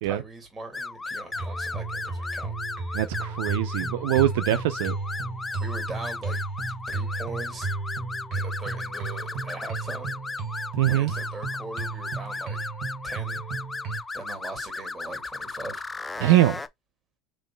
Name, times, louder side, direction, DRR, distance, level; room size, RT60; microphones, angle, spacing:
voice 1, 0.0-2.5 5.6-6.4 6.9-7.7 8.3-10.2 10.8-12.6 13.0-13.4 13.9-15.8, right 3 dB, 20° right, 2.7 m, -40 dB
sound 1, 0.7-16.7, left 3 dB, 15° left, 0.5 m, -35 dB
sound 2, 1.3-14.0, right 4 dB, 50° right, 1.7 m, -34 dB
voice 2, 2.9-5.0 10.8-11.1 16.2-16.6, right 14 dB, 70° right, 0.4 m, -23 dB
3.8 x 3.2 x 3.8 m
hypercardioid pair, 80°, 0 cm